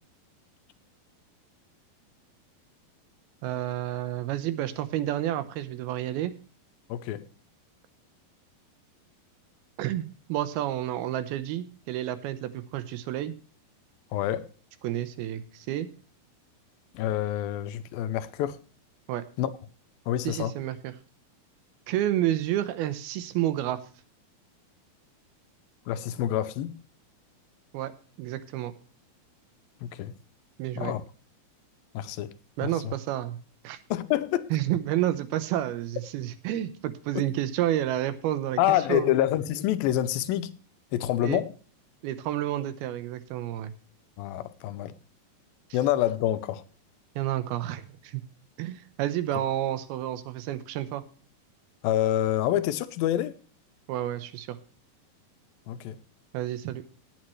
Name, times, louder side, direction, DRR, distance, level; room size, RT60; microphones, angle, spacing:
voice 1, 3.4-6.3 9.8-13.3 14.8-15.9 19.1-19.2 20.2-20.9 21.9-23.8 27.7-27.9 28.2-28.7 30.6-30.9 32.6-33.4 33.6-33.8 34.5-39.1 41.2-41.4 42.0-43.7 47.2-48.2 48.6-51.0 53.9-54.6 56.3-56.8, right 13 dB, 90° right, 2.9 m, -30 dB
voice 2, 6.9-7.3 14.1-14.5 16.9-18.6 19.4-19.5 20.1-20.5 25.9-26.7 29.8-30.1 30.8-31.0 31.9-32.4 32.6-32.9 33.9-34.5 38.6-40.5 40.9-41.5 44.2-44.9 45.7-46.6 51.8-53.3 55.7-56.0, left 12 dB, 80° left, 2.4 m, -27 dB
17.5 x 8.8 x 3.2 m
omnidirectional pair, 4.3 m